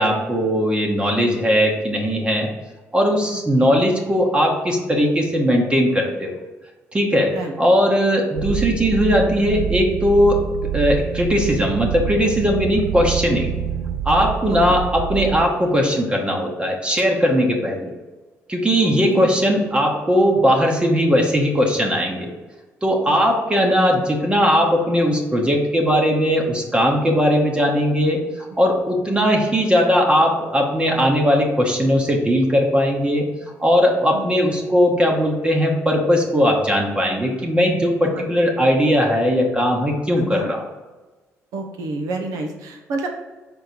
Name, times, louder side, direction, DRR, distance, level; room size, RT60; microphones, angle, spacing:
voice 1, 0.0-2.5 2.9-6.3 6.9-7.3 7.6-10.4 10.7-13.5 14.0-17.9 18.5-22.3 22.8-33.3 33.6-40.6, equal, 20° right, 1 dB, 1.1 m, -19 dB
sound 1, 8.4-15.5, right 8 dB, 60° right, 0.5 m, -26 dB
voice 2, 18.8-19.3 23.1-23.2 34.1-34.6 38.0-38.2 40.1-40.5 41.5-43.1, right 2 dB, 85° right, 3 dB, 1.0 m, -30 dB
5.4 x 3.9 x 4.6 m, 1.2 s
cardioid pair, 95°, 6 cm